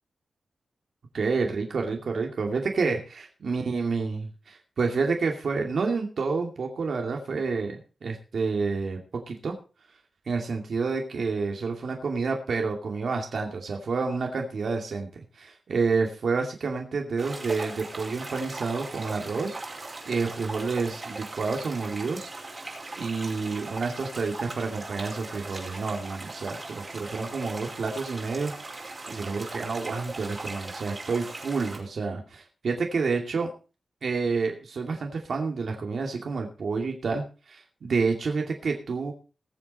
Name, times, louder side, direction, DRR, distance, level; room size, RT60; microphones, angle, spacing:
voice 1, 1.1-9.6 10.3-22.3 23.0-33.5 34.0-39.1, right 4 dB, 70° right, 2 dB, 2.4 m, -29 dB
sound 1, 17.2-31.8, right 2 dB, 35° right, 4.9 m, -39 dB
20.5 x 7.4 x 4.2 m, 0.34 s
wide cardioid pair, 120°, 0 cm